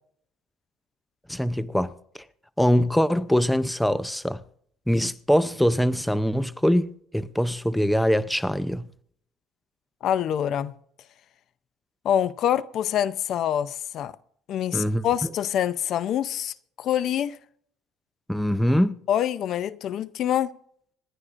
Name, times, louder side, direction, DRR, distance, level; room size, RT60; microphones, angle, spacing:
voice 1, 1.3-1.9 2.6-4.4 4.9-8.9 14.7-15.3 18.3-19.0, equal, 5° left, 0.5 m, -23 dB
voice 2, 10.0-10.7 12.0-14.1 14.5-17.4 19.1-20.5, left 10 dB, 55° left, 0.5 m, -25 dB
26.5 x 11.5 x 2.5 m
cardioid pair, 120°, 0 cm